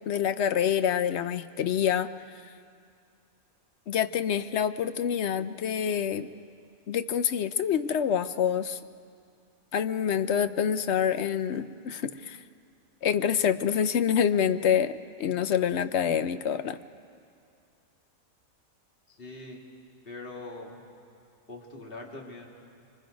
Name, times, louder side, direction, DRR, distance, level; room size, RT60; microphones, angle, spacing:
voice 1, 0.1-2.1 3.9-6.3 6.9-8.8 9.7-12.4 13.0-16.8, left 8 dB, 60° left, 12 dB, 0.8 m, -26 dB
voice 2, 19.1-19.6 20.0-20.8 21.5-22.5, left 2 dB, 40° left, -1 dB, 2.5 m, -42 dB
25.5 x 25.0 x 5.2 m, 2.4 s
omnidirectional pair, 1.5 m